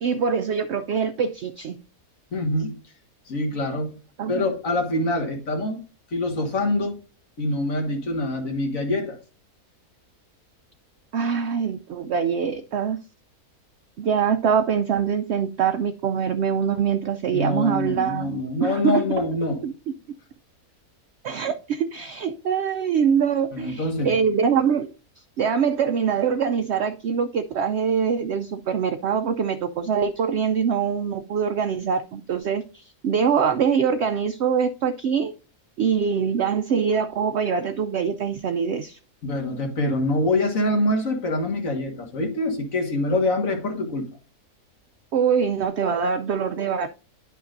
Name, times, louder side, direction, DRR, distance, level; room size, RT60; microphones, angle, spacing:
voice 1, 0.0-1.8 4.2-4.5 11.1-13.0 14.0-19.0 19.6-19.7 21.2-24.9 25.4-35.3 35.8-39.0 45.1-46.9, right 7 dB, 65° right, 0.7 m, -24 dB
voice 2, 2.3-2.7 3.3-3.9 4.3-5.8 6.1-7.0 7.4-9.2 17.3-19.6 23.5-24.2 39.2-44.1, left 1 dB, 60° left, 1.9 m, -25 dB
10.5 x 5.5 x 2.5 m
omnidirectional pair, 1.6 m